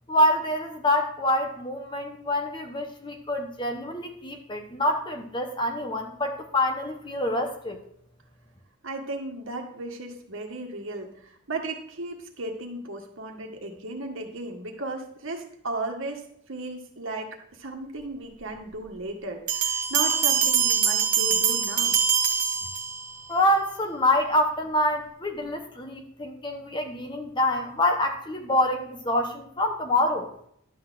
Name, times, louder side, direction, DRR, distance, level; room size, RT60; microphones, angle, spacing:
voice 1, 0.1-7.8 23.3-30.3, left 1 dB, 20° left, 4 dB, 0.9 m, -26 dB
voice 2, 8.8-22.0, right 2 dB, 60° right, 3 dB, 1.5 m, -35 dB
sound 1, 19.5-23.3, right 7 dB, 35° right, 1.1 m, -24 dB
11.5 x 4.2 x 7.5 m, 0.68 s
head